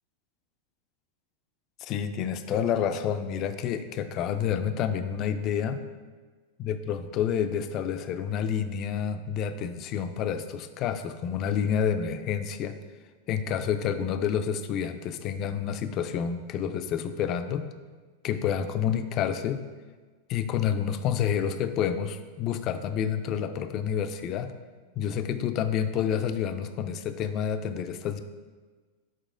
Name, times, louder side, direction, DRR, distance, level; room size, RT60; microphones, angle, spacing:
voice 1, 1.8-5.8 6.6-12.8 13.3-17.7 18.2-19.6 20.3-24.5 25.0-28.2, left 8 dB, 35° left, 9 dB, 0.4 m, -29 dB
6.7 x 4.3 x 3.7 m, 1.4 s
figure-of-eight pair, 90°, 0 cm